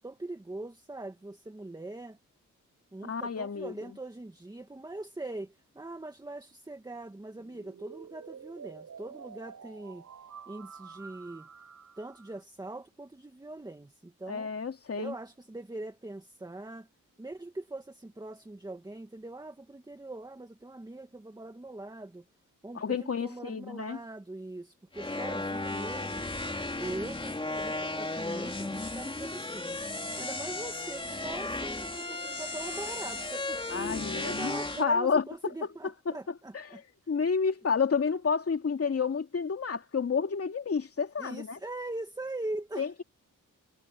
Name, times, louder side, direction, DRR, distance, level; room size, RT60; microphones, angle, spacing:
voice 1, 0.0-2.2 2.9-10.0 10.5-11.5 12.0-14.5 14.9-16.9 17.2-22.2 22.6-26.3 26.8-29.8 30.2-33.6 34.1-36.8 41.2-42.9, right 2 dB, 10° right, 1.8 m, -42 dB
voice 2, 3.1-3.7 14.3-15.1 22.7-24.0 33.7-36.2 36.5-36.8 37.1-41.6 42.8-43.0, left 5 dB, 45° left, 2.7 m, -30 dB
sound 1, 7.3-12.4, right 6 dB, 60° right, 7.4 m, -49 dB
sound 2, 24.9-34.8, left 2 dB, 15° left, 3.2 m, -35 dB
wide cardioid pair, 130°, 32 cm